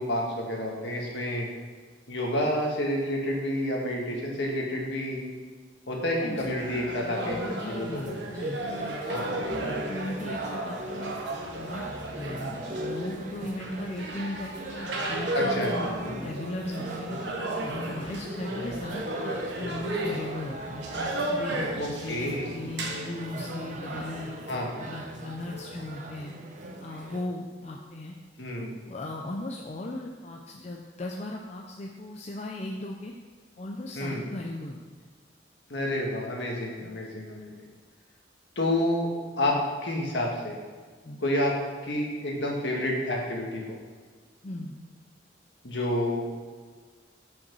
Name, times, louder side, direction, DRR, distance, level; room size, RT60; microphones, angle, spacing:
voice 1, 0.0-1.5 2.1-5.2 5.9-8.4 9.1-9.3 15.3-15.9 21.8-22.5 24.5-24.7 28.4-28.7 33.9-34.2 35.7-37.6 38.5-39.1 39.4-40.6 41.2-41.6 41.8-43.8 45.6-46.4, left 1 dB, 65° left, -1 dB, 1.6 m, -29 dB
sound 1, 6.4-24.1, right 1 dB, 65° right, 1.2 m, -34 dB
voice 2, 7.6-9.0 9.5-11.2 11.5-11.9 12.1-17.2 17.6-20.9 21.3-26.3 26.8-28.1 28.6-33.1 33.6-34.8 36.8-37.0 41.0-41.2 44.4-44.7, left 1 dB, 35° left, 0 dB, 0.5 m, -37 dB
sound 2, 7.7-27.3, right 1 dB, 40° right, 0.7 m, -40 dB
5.8 x 5.3 x 6.1 m, 1.5 s
head